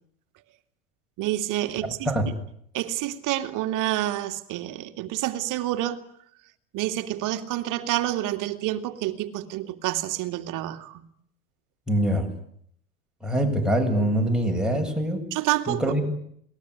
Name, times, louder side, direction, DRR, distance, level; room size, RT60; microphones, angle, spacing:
voice 1, 1.2-2.1 2.7-6.0 6.7-11.1 15.3-15.9, right 14 dB, 45° right, 2.5 m, -28 dB
voice 2, 11.9-12.3 13.2-15.2 15.7-16.2, right 1 dB, ahead, 8.0 m, -24 dB
28.0 x 20.5 x 9.9 m
hypercardioid pair, 100°, 42 cm